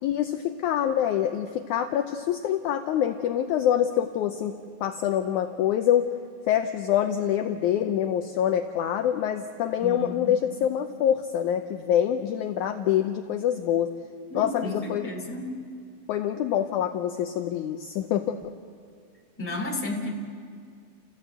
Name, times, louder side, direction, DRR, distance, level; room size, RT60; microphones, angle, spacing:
voice 1, 0.0-4.5 4.8-6.1 6.5-13.9 14.3-15.1 16.1-18.5, left 10 dB, 80° left, 6 dB, 1.8 m, -25 dB
voice 2, 9.8-10.4 14.3-15.6 19.4-20.1, left 1 dB, 5° left, 0 dB, 2.0 m, -33 dB
30.0 x 15.0 x 8.0 m, 2.2 s
omnidirectional pair, 4.2 m